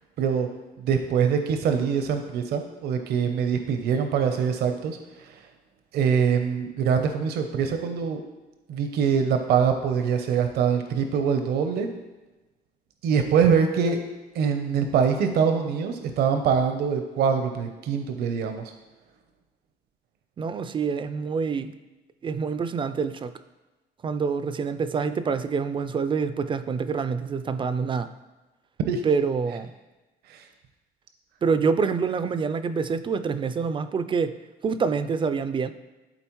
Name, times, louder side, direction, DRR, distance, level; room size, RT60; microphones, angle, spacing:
voice 1, 0.2-0.5 0.8-5.4 5.9-8.2 8.7-11.9 13.0-14.0 14.3-18.6 28.9-29.0 30.3-30.4, right 6 dB, 70° right, 6 dB, 0.7 m, -24 dB
voice 2, 20.4-21.7 22.2-23.3 24.0-28.1 29.0-29.7 31.4-34.4 34.6-35.7, right 5 dB, 30° right, 12 dB, 0.4 m, -26 dB
11.5 x 4.0 x 3.1 m, 1.1 s
cardioid pair, 110°, 17 cm